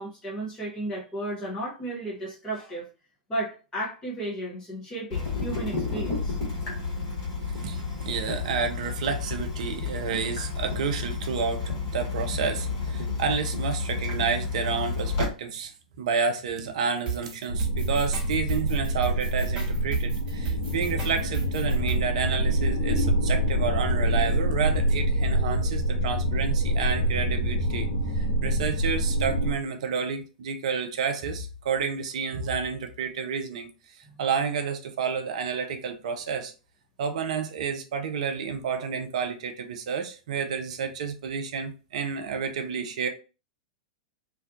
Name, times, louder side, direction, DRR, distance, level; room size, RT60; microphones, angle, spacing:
voice 1, 0.0-2.9 3.3-6.4, right 1 dB, 15° left, 0.8 m, -34 dB
Water tap faucet / Drip, 5.1-15.3, left 4 dB, 45° left, 1.3 m, -31 dB
voice 2, 7.6-15.7 16.0-27.9 28.1-33.7 34.2-36.5 37.0-43.1, right 6 dB, 55° right, 0.5 m, -30 dB
sound 1, 17.1-22.0, right 6 dB, 25° right, 1.0 m, -34 dB
sound 2, 17.5-29.5, equal, 60° left, 0.7 m, -26 dB
2.5 x 2.2 x 2.5 m
figure-of-eight pair, 95°, 4 cm